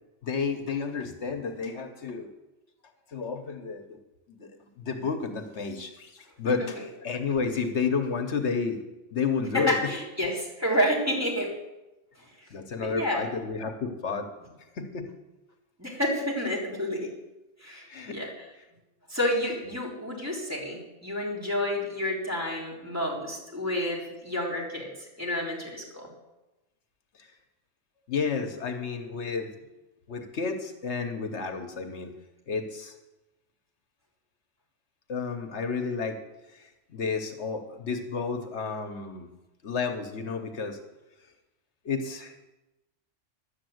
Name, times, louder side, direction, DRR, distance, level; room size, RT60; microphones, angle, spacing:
voice 1, 0.2-2.3 3.1-3.8 4.3-4.5 4.8-8.8 9.1-9.8 12.5-14.3 14.7-15.1 17.9-18.2 27.2-27.3 28.1-29.5 30.1-32.1 32.5-33.0 35.1-36.2 36.5-39.3 39.6-40.8 41.8-42.5, left 5 dB, 70° left, 6 dB, 1.3 m, -31 dB
voice 2, 9.5-11.5 12.4-12.5 12.8-13.3 15.8-17.1 17.6-18.3 19.1-26.1, left 1 dB, 15° right, -4 dB, 3.6 m, -30 dB
11.5 x 8.5 x 7.8 m, 1.0 s
omnidirectional pair, 1.2 m